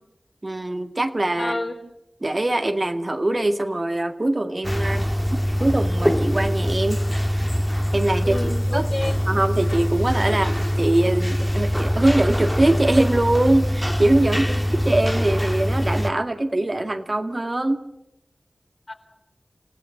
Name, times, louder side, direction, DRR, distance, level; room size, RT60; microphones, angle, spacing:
voice 1, 0.4-1.6 2.2-7.0 7.9-8.4 8.7-8.9 9.3-10.5 10.8-14.4 14.8-17.8, right 1 dB, 40° right, 7 dB, 2.0 m, -22 dB
voice 2, 1.4-1.8 8.2-9.2 10.3-10.5 14.3-14.7 18.9-19.0, left 2 dB, 50° left, 4 dB, 4.6 m, -30 dB
sound 1, 4.6-16.1, equal, ahead, 1.6 m, -23 dB
29.0 x 17.0 x 9.1 m, 0.83 s
wide cardioid pair, 50°, 0 cm